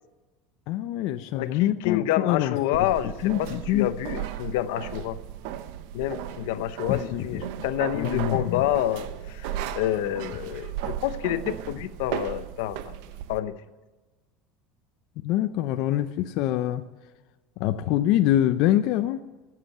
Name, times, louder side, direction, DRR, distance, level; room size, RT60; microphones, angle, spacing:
voice 1, 0.7-2.6 3.2-3.9 6.9-7.4 7.9-8.6 15.2-16.8 17.6-19.2, left 13 dB, 50° left, 8 dB, 0.6 m, -25 dB
voice 2, 1.3-5.2 5.9-9.5 9.7-13.0 13.3-13.5, left 13 dB, 80° left, 12 dB, 0.8 m, -28 dB
sound 1, 2.7-13.4, right 11 dB, 65° right, 0.8 m, -36 dB
14.0 x 7.5 x 8.9 m, 1.2 s
cardioid pair, 170°, 0 cm